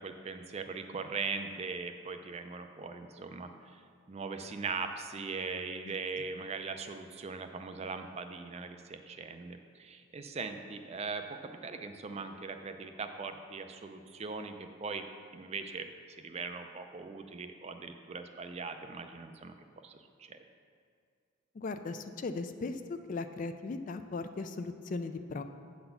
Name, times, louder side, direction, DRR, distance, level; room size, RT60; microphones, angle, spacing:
voice 1, 0.0-3.8 4.1-15.1 15.3-19.6 19.8-20.4, right 4 dB, 30° right, 7 dB, 0.4 m, -40 dB
voice 2, 5.8-6.2 21.5-25.4, left 3 dB, 40° left, 8 dB, 0.3 m, -38 dB
8.7 x 4.0 x 6.9 m, 2.2 s
head